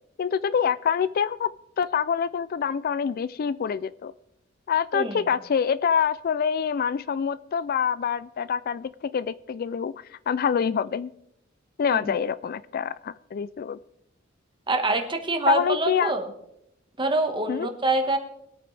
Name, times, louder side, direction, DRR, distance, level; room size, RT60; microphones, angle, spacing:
voice 1, 0.2-1.5 1.8-4.1 4.7-11.1 11.8-13.8 15.5-16.1 17.5-17.7, left 7 dB, 50° left, 17 dB, 0.3 m, -26 dB
voice 2, 14.7-16.3 17.0-18.2, right 2 dB, 25° right, 5 dB, 1.5 m, -25 dB
22.5 x 8.9 x 3.4 m, 0.78 s
head